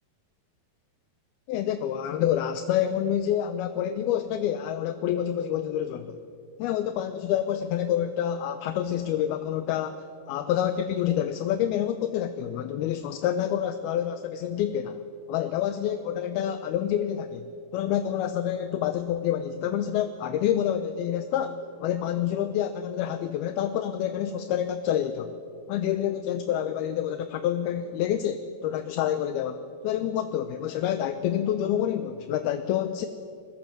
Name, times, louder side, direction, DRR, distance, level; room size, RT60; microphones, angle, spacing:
voice 1, 1.5-6.2 6.6-15.0 15.3-21.5 21.8-25.4 25.7-33.1, left 10 dB, 75° left, 9 dB, 2.5 m, -28 dB
29.0 x 21.5 x 7.5 m, 2.4 s
omnidirectional pair, 5.0 m